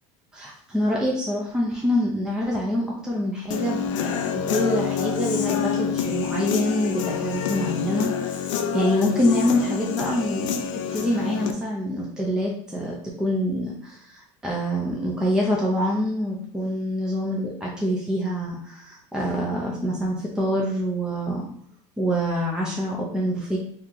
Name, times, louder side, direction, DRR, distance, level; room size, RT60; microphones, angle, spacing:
voice 1, 0.3-10.6 10.9-21.5 22.0-23.6, equal, 5° right, -3 dB, 0.6 m, -26 dB
Human voice / Guitar, 3.5-11.5, left 8 dB, 90° left, 0.4 m, -27 dB
2.8 x 2.4 x 3.8 m, 0.64 s
supercardioid pair, 105°, 16 cm